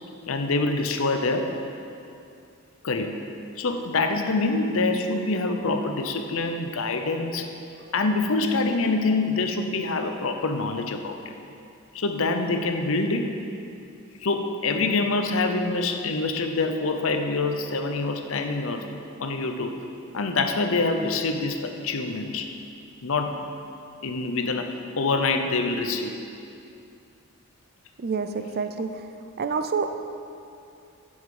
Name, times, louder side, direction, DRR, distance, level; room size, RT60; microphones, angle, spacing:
voice 1, 0.3-1.5 2.8-3.2 3.6-7.5 7.9-11.2 11.9-13.4 14.2-18.9 19.2-19.8 20.1-22.5 23.0-23.5 24.0-24.7 25.0-26.2, left 3 dB, 65° left, 6 dB, 0.7 m, -25 dB
voice 2, 28.0-29.1 29.4-29.9, right 5 dB, 45° right, 8 dB, 0.5 m, -28 dB
9.8 x 7.3 x 4.9 m, 2.6 s
head